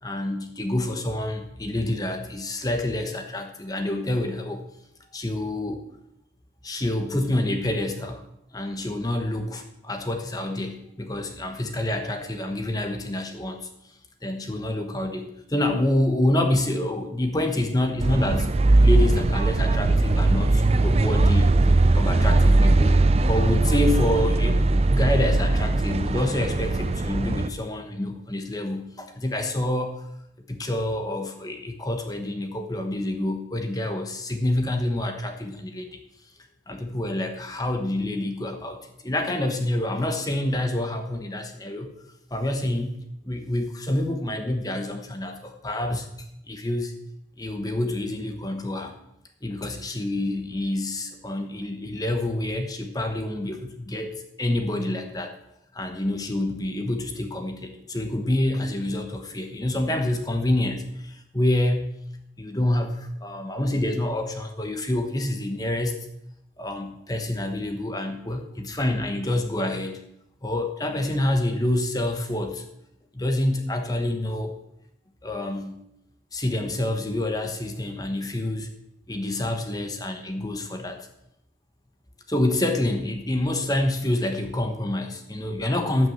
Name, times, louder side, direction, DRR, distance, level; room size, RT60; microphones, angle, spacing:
voice 1, 0.0-4.6 5.1-5.8 6.6-8.2 8.5-13.7 14.2-18.5 18.8-21.5 22.0-23.0 23.3-24.6 24.9-30.1 30.5-36.0 36.7-41.9 42.3-43.0 43.3-46.1 46.5-46.9 47.4-48.9 49.4-55.3 55.8-61.9 62.4-66.0 66.6-70.0 70.4-72.6 73.1-74.6 75.2-75.8 76.3-78.7 79.1-81.1 82.3-86.1, left 1 dB, 20° left, 6 dB, 1.1 m, -27 dB
sound 1, 18.0-27.5, right 2 dB, 35° right, 0.4 m, -20 dB
13.0 x 6.2 x 7.9 m, 0.80 s
head